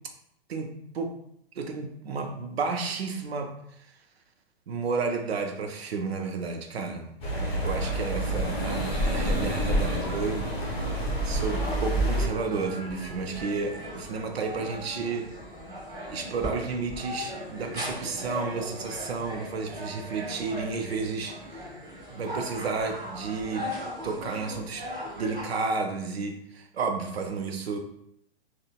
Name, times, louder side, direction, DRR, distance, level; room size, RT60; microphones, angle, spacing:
voice 1, 0.5-1.2 1.6-3.9 4.7-11.0 11.2-15.3 16.1-21.7 22.1-23.7 24.0-24.9 25.2-27.8, right 4 dB, 75° right, 5 dB, 0.6 m, -32 dB
sound 1, 7.2-12.3, right 1 dB, 20° left, 0.8 m, -28 dB
sound 2, 10.7-25.4, equal, 20° right, 1.5 m, -38 dB
3.8 x 2.2 x 2.3 m, 0.72 s
figure-of-eight pair, 115°, 31 cm